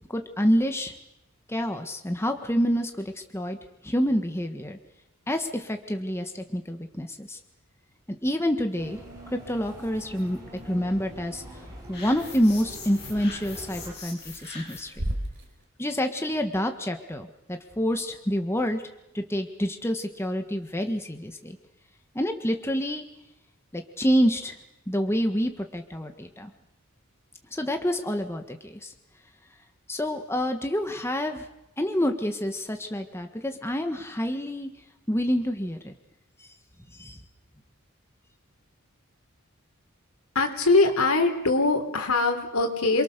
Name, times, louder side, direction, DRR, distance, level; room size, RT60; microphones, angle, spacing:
voice 1, 0.1-0.9 1.5-3.6 3.8-4.8 5.3-7.4 8.1-9.0 9.3-10.4 10.6-11.4 11.9-15.0 15.8-18.8 19.1-21.6 22.1-23.1 23.7-24.6 24.9-26.5 27.5-28.9 29.9-31.4 31.8-34.7 35.1-35.9 36.9-37.2, equal, 10° left, 5 dB, 1.6 m, -27 dB
sound 1, 8.7-13.9, right 1 dB, 20° right, 6.4 m, -44 dB
sound 2, 8.7-15.6, right 1 dB, 60° right, 3.9 m, -41 dB
sound 3, 11.9-15.0, left 4 dB, 50° left, 7.6 m, -42 dB
voice 2, 40.4-43.0, left 3 dB, 85° left, 5 dB, 3.8 m, -22 dB
28.5 x 22.5 x 6.8 m, 0.88 s
head